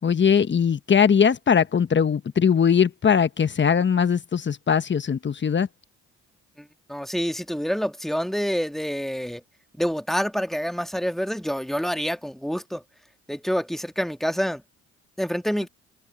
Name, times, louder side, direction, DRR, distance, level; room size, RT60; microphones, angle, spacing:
voice 1, 0.0-5.7, left 7 dB, 35° left, 1.2 m, -20 dB
voice 2, 6.6-9.4 9.8-12.8 13.3-14.6 15.2-15.7, equal, ahead, 1.9 m, -27 dB
supercardioid pair, 70°, 32 cm